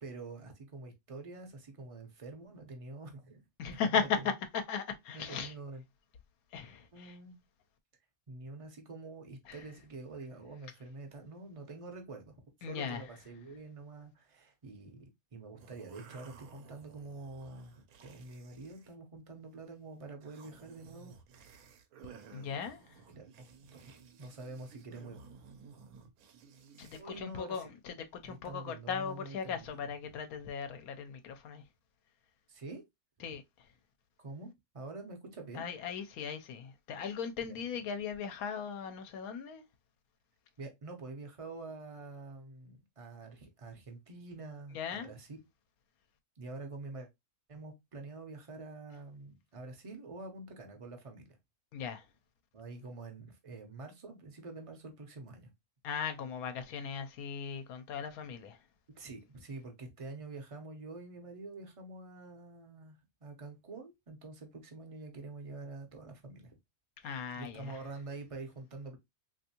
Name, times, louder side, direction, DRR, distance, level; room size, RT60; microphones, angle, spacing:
voice 1, 0.0-4.1 5.1-5.8 6.9-7.4 8.3-12.3 12.6-15.1 15.3-21.1 22.3-22.4 23.1-25.2 27.0-27.7 28.2-29.8 32.5-32.8 34.2-35.6 37.5-37.6 40.6-45.4 46.4-47.1 47.5-51.4 52.5-55.5 58.9-66.6 67.0-69.0, right 3 dB, 35° right, 0.5 m, -47 dB
voice 2, 3.6-4.2 4.5-5.5 6.5-7.1 9.5-9.6 12.6-13.0 22.3-23.0 26.8-28.0 28.2-31.6 33.2-33.4 35.5-39.6 44.7-45.1 51.7-52.1 55.8-58.6 67.0-67.8, left 6 dB, 80° left, 1.0 m, -37 dB
sound 1, 15.6-19.0 19.3-19.6 20.1-27.0, right 5 dB, 80° right, 1.1 m, -55 dB
3.4 x 2.7 x 2.7 m
omnidirectional pair, 1.5 m